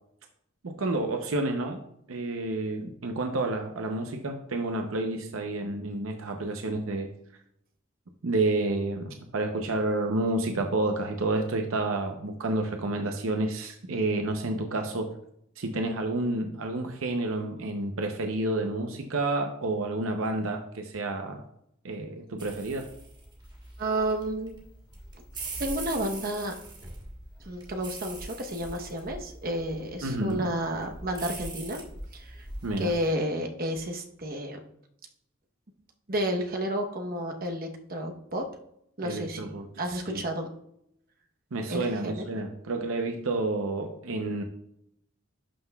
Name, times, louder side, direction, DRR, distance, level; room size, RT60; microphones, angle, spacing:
voice 1, 0.6-1.8 2.1-7.1 8.2-15.1 15.6-21.4 21.8-22.9 30.0-30.4 32.6-32.9 39.0-40.2 41.5-44.4, right 2 dB, 80° right, 4 dB, 0.7 m, -30 dB
sound 1, 22.4-33.1, right 2 dB, 20° right, 1.3 m, -42 dB
voice 2, 23.8-24.5 25.6-26.5 27.5-31.8 32.1-32.4 32.8-34.6 36.1-38.5 39.0-40.5 41.7-42.2, right 1 dB, 45° right, 3 dB, 0.9 m, -31 dB
11.5 x 5.7 x 2.3 m, 0.74 s
head